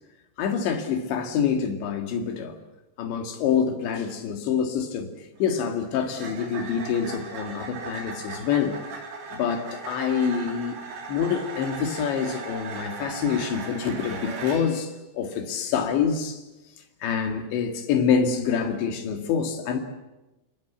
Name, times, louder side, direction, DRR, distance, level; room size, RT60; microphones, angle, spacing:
voice 1, 0.4-2.6 3.0-5.1 5.4-9.0 9.3-10.8 11.1-16.4 17.0-19.8, left 7 dB, 70° left, 6 dB, 4.1 m, -26 dB
sound 1, 5.4-14.8, right 4 dB, 85° right, 6.5 m, -38 dB
29.5 x 18.0 x 8.2 m, 1.0 s
omnidirectional pair, 5.6 m